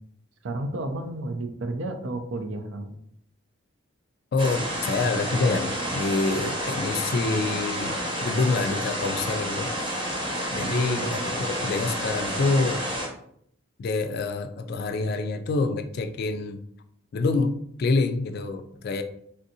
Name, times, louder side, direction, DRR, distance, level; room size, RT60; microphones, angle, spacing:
voice 1, 0.4-3.0 10.6-11.4, right 2 dB, 70° right, 6 dB, 0.5 m, -32 dB
voice 2, 4.3-8.0 8.2-9.9 10.5-12.8 13.8-16.6 17.1-19.0, left 3 dB, 50° left, 9 dB, 0.3 m, -26 dB
sound 1, 4.4-13.1, equal, 25° right, 0.9 m, -30 dB
3.3 x 2.6 x 2.7 m, 0.68 s
head